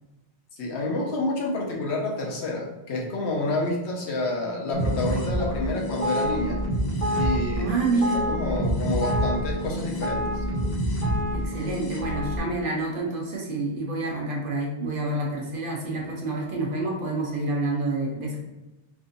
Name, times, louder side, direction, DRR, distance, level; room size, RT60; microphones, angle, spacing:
voice 1, 0.6-6.6 7.1-8.0 8.3-10.3, left 2 dB, 80° left, -1 dB, 1.0 m, -28 dB
sound 1, 4.7-12.4, equal, 35° left, 0.9 m, -27 dB
voice 2, 7.6-8.2 11.3-18.4, right 2 dB, 55° right, -2 dB, 0.8 m, -28 dB
3.5 x 2.6 x 2.5 m, 1.0 s
omnidirectional pair, 1.1 m